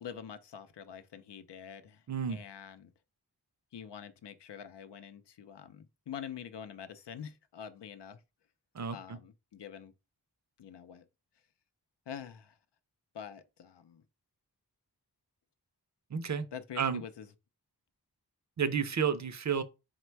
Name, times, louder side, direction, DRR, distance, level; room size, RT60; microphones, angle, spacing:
voice 1, 0.0-2.9 3.7-8.2 8.9-9.9 10.6-11.1 12.1-12.6 13.1-14.0 16.5-17.3, left 8 dB, 85° left, 0.5 m, -46 dB
voice 2, 2.1-2.4 8.7-9.2 16.1-16.5 16.8-17.0 18.6-19.6, right 7 dB, 45° right, 0.5 m, -31 dB
4.1 x 2.2 x 4.4 m
wide cardioid pair, 80°, 40 cm